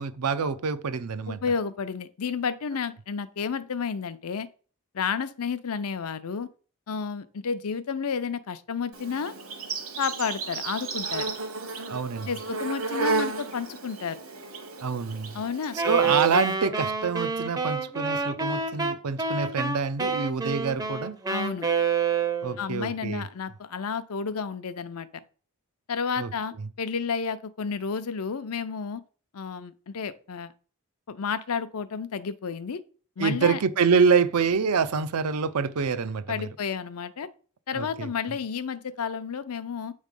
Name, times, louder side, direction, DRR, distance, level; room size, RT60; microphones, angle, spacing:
voice 1, 0.0-1.4 11.9-12.3 14.8-15.4 15.7-21.2 22.4-23.3 26.2-26.3 33.2-36.5 37.7-38.4, right 5 dB, 85° right, 0.6 m, -26 dB
voice 2, 1.3-4.5 4.9-6.5 6.9-9.3 10.0-11.3 12.3-14.2 15.3-15.8 16.0-16.1 21.3-21.7 22.6-25.1 25.9-29.0 29.3-30.5 31.1-32.8 33.2-33.6 36.3-37.3 37.7-39.9, left 6 dB, 80° left, 0.6 m, -31 dB
Insect, 8.9-16.5, right 3 dB, 65° right, 1.2 m, -33 dB
Wind instrument woodwind instrument, 15.7-22.7, right 5 dB, 15° right, 0.5 m, -28 dB
8.2 x 3.2 x 5.2 m
head